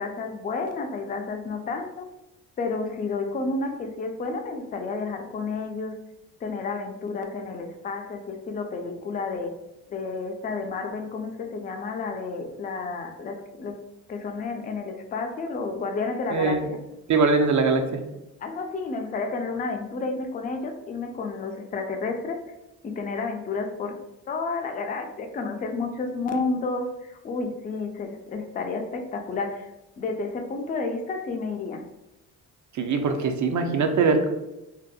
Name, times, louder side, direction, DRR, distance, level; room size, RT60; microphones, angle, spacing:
voice 1, 0.0-2.1 2.6-5.9 6.4-9.5 9.9-13.7 14.1-16.8 18.4-22.4 22.8-24.0 24.3-29.7 30.0-31.8, left 3 dB, 25° left, 4 dB, 0.3 m, -31 dB
voice 2, 17.1-17.8 32.8-34.3, right 4 dB, 45° right, 6 dB, 0.5 m, -21 dB
2.7 x 2.0 x 2.3 m, 0.93 s
supercardioid pair, 60°, 40 cm